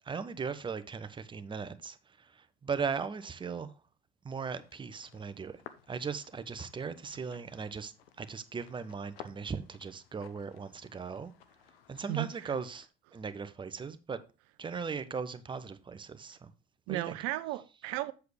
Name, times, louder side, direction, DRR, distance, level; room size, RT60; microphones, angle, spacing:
voice 1, 0.1-2.0 2.6-3.7 4.2-5.6 5.9-11.3 11.9-12.9 13.1-14.2 14.6-16.5 16.9-17.2, right 5 dB, 15° right, 0.7 m, -38 dB
sound 1, 4.5-12.9, left 9 dB, 70° left, 0.9 m, -56 dB
voice 2, 12.1-12.6 16.9-18.1, right 17 dB, 50° right, 0.8 m, -35 dB
7.8 x 6.9 x 3.3 m
figure-of-eight pair, 75°, 31 cm